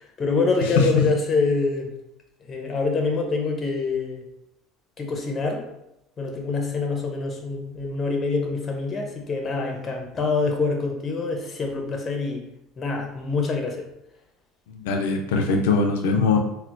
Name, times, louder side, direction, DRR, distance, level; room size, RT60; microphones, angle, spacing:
voice 1, 0.0-1.9 2.4-4.2 5.0-5.7 6.2-12.4 12.8-13.9, left 4 dB, 30° left, 2 dB, 0.8 m, -25 dB
voice 2, 0.8-1.1 14.7-16.4, left 4 dB, 85° left, 3 dB, 0.4 m, -21 dB
4.2 x 2.1 x 2.5 m, 0.86 s
supercardioid pair, 100°, 0 cm